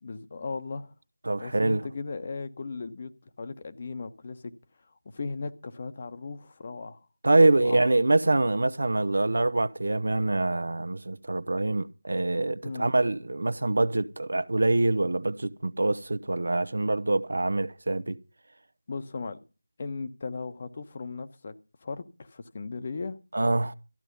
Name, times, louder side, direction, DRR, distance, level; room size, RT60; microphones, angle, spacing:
voice 1, 0.0-0.9 1.4-3.1 3.4-4.5 5.1-7.0 7.4-7.9 12.6-12.9 18.9-19.4 19.8-21.5 21.8-23.2, left 4 dB, 35° left, 1.3 m, -37 dB
voice 2, 1.2-1.9 7.2-18.2 23.3-23.7, right 2 dB, 65° right, 0.9 m, -25 dB
14.0 x 11.5 x 5.5 m
figure-of-eight pair, 165°, 0 cm